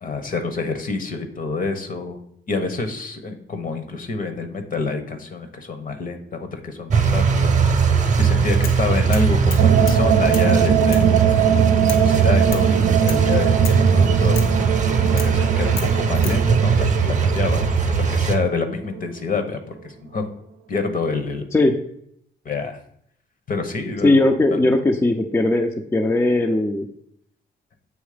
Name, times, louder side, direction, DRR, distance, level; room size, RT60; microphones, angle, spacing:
voice 1, 0.0-2.2 2.5-7.5 8.2-11.4 11.8-14.3 15.0-17.7 18.0-19.8 20.1-20.3 20.7-21.5 22.4-22.8 23.5-24.1, left 4 dB, 45° left, 8 dB, 1.0 m, -27 dB
sound 1, 6.9-18.4, right 6 dB, 40° right, 0.9 m, -19 dB
sound 2, 8.6-8.8 9.1-10.0 10.3-10.5 10.9-11.1 11.9-12.1 12.5-12.7 13.1-13.2 13.6-13.8 14.3-14.6 15.2-15.4 15.8-16.4, left 6 dB, 85° left, 0.9 m, -34 dB
sound 3, 9.6-19.0, right 9 dB, 75° right, 0.6 m, -22 dB
voice 2, 24.0-26.9, left 2 dB, 15° left, 4 dB, 0.5 m, -18 dB
8.0 x 3.1 x 5.0 m, 0.71 s
cardioid pair, 90°, 20 cm